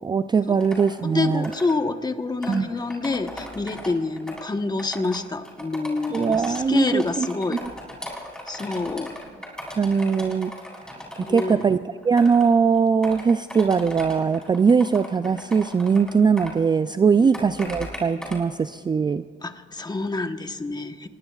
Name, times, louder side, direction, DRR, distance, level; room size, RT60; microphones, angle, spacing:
voice 1, 0.0-1.5 2.5-2.7 6.1-7.6 9.8-10.5 11.2-11.8 12.0-19.2, right 5 dB, 20° right, 12 dB, 0.3 m, -21 dB
sound 1, 0.6-0.9 1.4-1.7 2.4-4.4 4.8-5.2 5.4-11.6 12.0-12.5 12.8-16.5 17.3-18.4, left 1 dB, 5° left, 4.3 m, -37 dB
voice 2, 1.1-7.6 8.5-9.1 11.2-11.6 19.4-21.1, left 3 dB, 20° left, 7 dB, 1.1 m, -27 dB
26.5 x 20.0 x 2.4 m, 2.1 s
cardioid pair, 90°, 20 cm